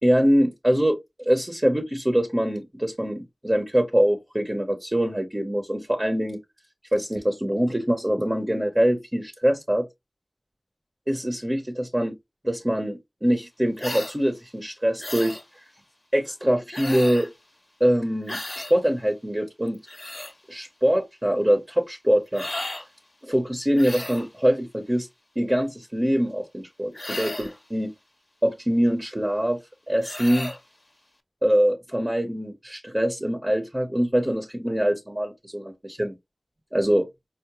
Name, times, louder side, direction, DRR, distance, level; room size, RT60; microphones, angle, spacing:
voice 1, 0.0-6.4 6.9-9.9 11.1-12.1 12.4-15.4 16.1-17.3 17.8-19.8 20.5-22.5 23.2-25.1 25.4-27.9 28.4-29.6 29.9-30.5 31.4-36.1 36.7-37.1, equal, 25° right, 0.8 m, -24 dB
sound 1, 13.8-14.2 15.0-15.4 16.7-17.3 18.3-18.7 19.7-20.3 22.3-22.9 23.7-24.3 26.9-27.6 30.0-30.6, left 1 dB, 35° left, 0.7 m, -34 dB
4.6 x 2.1 x 2.9 m
wide cardioid pair, 45°, 0 cm